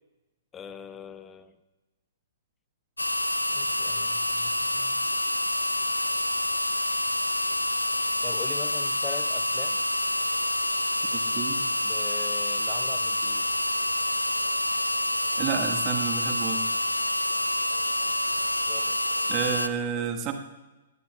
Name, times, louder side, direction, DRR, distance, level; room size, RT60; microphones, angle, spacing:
voice 1, 0.5-1.6 3.5-5.1 8.2-9.8 11.1-11.4 11.8-13.5 18.4-19.0, left 7 dB, 15° left, 12 dB, 0.7 m, -42 dB
sound 1, 3.0-19.7, left 1 dB, 85° left, 0.5 m, -27 dB
voice 2, 11.1-11.6 15.4-16.7 19.3-20.3, right 8 dB, 30° right, 5 dB, 1.2 m, -30 dB
20.0 x 17.0 x 2.2 m, 1.1 s
figure-of-eight pair, 115°, 0 cm